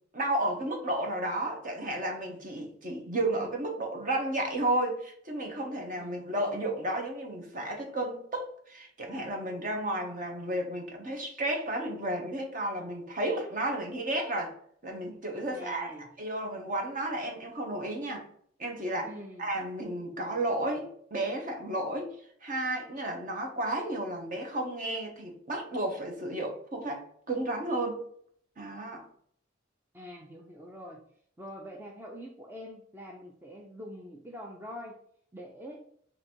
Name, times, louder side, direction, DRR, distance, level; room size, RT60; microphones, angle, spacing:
voice 1, 0.1-14.5 14.8-15.9 16.2-18.3 18.6-19.1 19.4-22.1 22.4-28.0 28.6-29.1, right 1 dB, 40° right, 1.0 m, -32 dB
voice 2, 5.9-6.3 15.5-16.1 19.0-19.5 29.9-31.1 31.4-35.0 35.3-35.8, equal, 10° right, 0.5 m, -44 dB
3.9 x 2.7 x 4.4 m
head